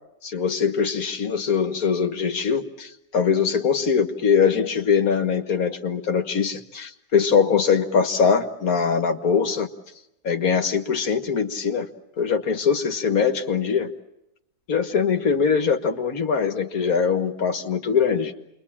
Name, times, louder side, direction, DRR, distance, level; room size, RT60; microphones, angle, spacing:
voice 1, 0.2-9.7 10.2-11.9 12.2-13.9 14.7-18.3, left 6 dB, 65° left, 7 dB, 2.0 m, -22 dB
29.0 x 23.0 x 8.7 m, 0.88 s
omnidirectional pair, 1.6 m